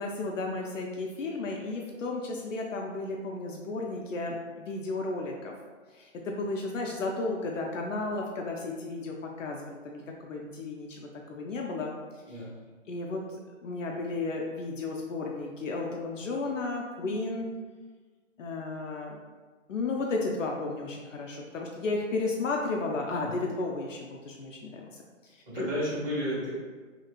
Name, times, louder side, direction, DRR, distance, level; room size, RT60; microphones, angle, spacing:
voice 1, 0.0-5.5 5.9-11.9 12.3-12.4 12.9-13.2 13.6-17.5 18.4-19.2 19.7-25.0 25.3-25.6, left 3 dB, 75° left, 0 dB, 0.5 m, -33 dB
voice 2, 25.5-26.5, equal, 45° right, -8 dB, 1.5 m, -32 dB
2.9 x 2.8 x 2.4 m, 1.4 s
hypercardioid pair, 175°, 39 cm